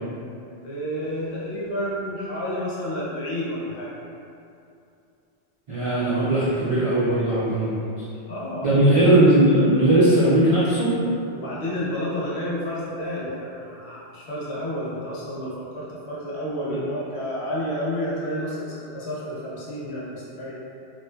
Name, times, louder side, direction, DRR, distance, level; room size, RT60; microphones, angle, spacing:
voice 1, 0.6-3.9 8.3-8.7 11.3-20.6, equal, 75° left, -7 dB, 0.9 m, -30 dB
voice 2, 5.7-8.0 8.6-10.9, right 1 dB, 55° right, -12 dB, 0.3 m, -19 dB
2.6 x 2.1 x 2.2 m, 2.6 s
omnidirectional pair, 1.1 m